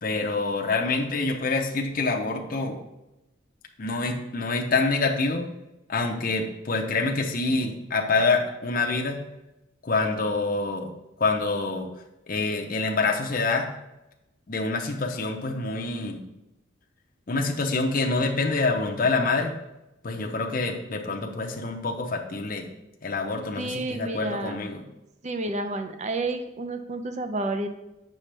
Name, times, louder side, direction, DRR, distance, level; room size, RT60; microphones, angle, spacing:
voice 1, 0.0-2.8 3.8-5.5 5.9-9.2 9.8-10.9 11.2-11.9 12.3-13.7 14.5-16.2 17.3-19.5 20.0-22.7 23.0-24.8, left 3 dB, 45° left, 2 dB, 0.6 m, -26 dB
voice 2, 23.6-24.6 25.2-27.7, right 2 dB, 35° right, 7 dB, 0.5 m, -30 dB
7.4 x 6.1 x 3.3 m, 0.93 s
head